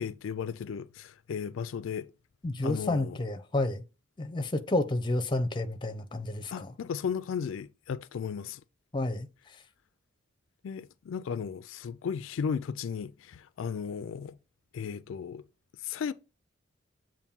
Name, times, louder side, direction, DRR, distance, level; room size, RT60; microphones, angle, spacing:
voice 1, 0.0-2.1 2.6-3.2 6.5-8.6 10.6-14.4 14.7-15.4 15.8-16.1, left 6 dB, 80° left, 0.3 m, -35 dB
voice 2, 2.4-3.8 4.2-6.7 8.9-9.3, left 2 dB, 25° left, 0.6 m, -30 dB
7.1 x 2.6 x 5.3 m
head